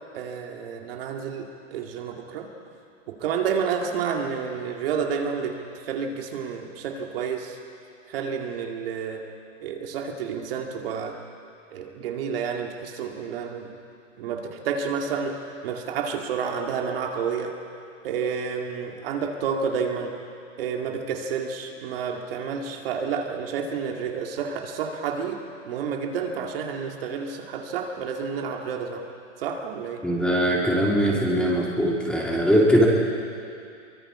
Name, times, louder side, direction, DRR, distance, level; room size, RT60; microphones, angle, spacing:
voice 1, 0.1-2.5 3.1-7.6 8.1-9.3 9.6-11.2 11.7-13.7 14.2-17.6 18.0-20.1 20.6-29.1 29.4-30.0, right 6 dB, 50° right, 2 dB, 2.4 m, -30 dB
voice 2, 30.0-32.9, equal, ahead, -3 dB, 2.3 m, -21 dB
24.0 x 23.5 x 5.0 m, 2.5 s
hypercardioid pair, 155°, 37 cm